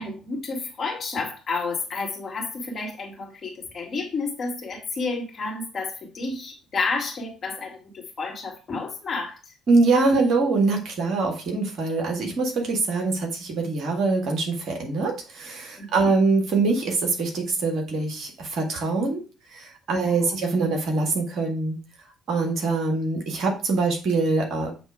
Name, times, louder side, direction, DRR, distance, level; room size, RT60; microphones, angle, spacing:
voice 1, 0.0-9.3 15.8-15.9 20.1-20.2, left 3 dB, 40° left, 0 dB, 2.2 m, -30 dB
voice 2, 9.7-19.2 19.5-21.8 22.3-24.7, right 3 dB, 50° right, 2 dB, 1.8 m, -24 dB
7.2 x 3.5 x 4.9 m, 0.34 s
figure-of-eight pair, 50°, 0 cm